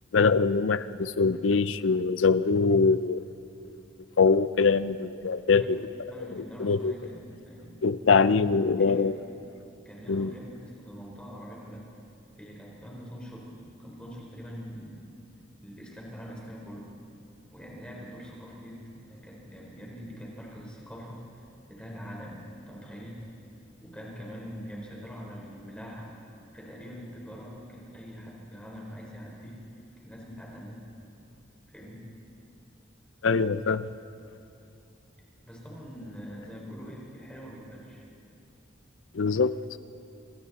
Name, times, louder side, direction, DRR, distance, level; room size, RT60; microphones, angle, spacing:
voice 1, 0.1-3.3 4.2-5.9 6.3-6.9 7.8-9.2 10.1-10.3 33.2-33.9 39.1-39.6, left 4 dB, 90° left, 15 dB, 0.6 m, -23 dB
voice 2, 6.1-8.2 8.9-9.1 9.8-11.9 12.3-15.0 15.6-16.9 17.5-21.2 21.7-23.2 23.8-26.1 26.5-29.6 30.0-30.8 31.7-32.0 35.4-38.0, equal, 5° left, -3 dB, 4.2 m, -43 dB
27.0 x 23.0 x 4.2 m, 2.7 s
head